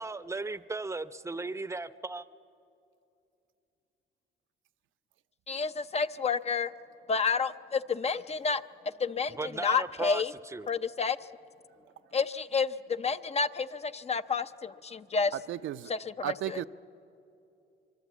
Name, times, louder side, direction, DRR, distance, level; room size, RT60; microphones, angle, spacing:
voice 1, 0.0-2.3 9.3-10.7, right 3 dB, 15° right, 0.7 m, -36 dB
voice 2, 5.5-6.7 7.1-8.6 9.0-10.3 10.7-11.2 12.1-15.3 15.9-16.6, left 5 dB, 30° left, 0.6 m, -30 dB
voice 3, 15.3-15.9 16.2-16.6, right 12 dB, 80° right, 0.6 m, -34 dB
24.0 x 23.0 x 8.3 m
cardioid pair, 90°, 20 cm